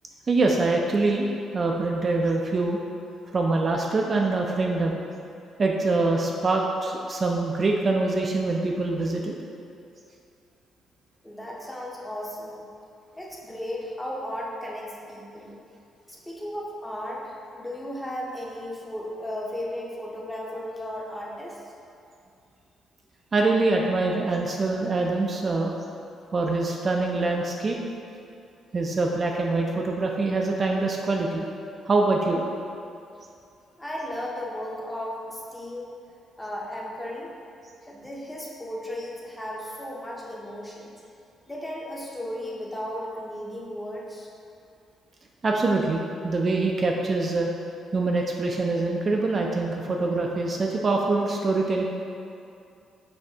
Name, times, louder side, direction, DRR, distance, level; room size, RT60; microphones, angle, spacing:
voice 1, 0.3-1.3 1.5-2.8 3.3-5.0 5.6-9.3 23.3-25.7 26.3-27.8 28.7-31.4 31.9-32.4 45.4-47.5 47.9-51.8, right 3 dB, 40° right, 0 dB, 0.3 m, -24 dB
voice 2, 11.2-12.6 13.1-15.6 16.1-21.6 33.8-35.9 36.4-37.4 37.8-40.9 41.5-44.3, left 1 dB, 10° left, -3 dB, 0.7 m, -35 dB
5.2 x 2.6 x 2.7 m, 2.5 s
cardioid pair, 90°, 0 cm